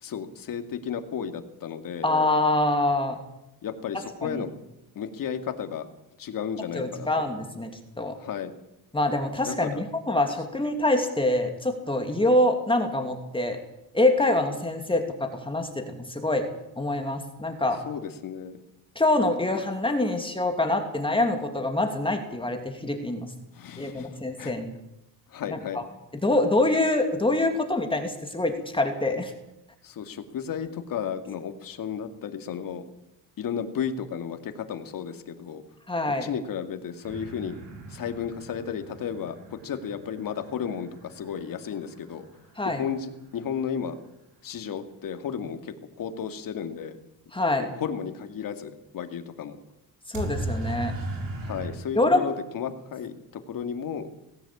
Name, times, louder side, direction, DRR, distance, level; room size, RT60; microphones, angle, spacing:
voice 1, 0.0-2.1 3.6-4.5 5.0-5.9 6.2-7.1 8.2-8.6 9.5-9.8 17.9-18.6 23.5-24.5 25.3-25.8 29.8-32.8 33.4-35.6 36.2-37.5 37.9-42.3 42.7-44.0 44.4-47.0 47.8-49.6 51.4-54.2, left 7 dB, 60° left, 7 dB, 2.3 m, -33 dB
voice 2, 2.0-3.2 4.2-4.4 6.7-7.7 8.0-8.1 8.9-13.6 13.9-16.5 16.8-17.8 19.0-23.3 23.8-24.7 25.5-25.8 26.2-29.3 35.9-36.3 42.6-42.8 47.3-47.7 50.1-50.9 51.9-52.2, left 2 dB, 15° left, 4 dB, 2.7 m, -25 dB
sound 1, 37.0-42.8 50.1-51.7, right 1 dB, 65° right, 6.4 m, -37 dB
19.0 x 16.0 x 8.6 m, 0.86 s
cardioid pair, 120°, 37 cm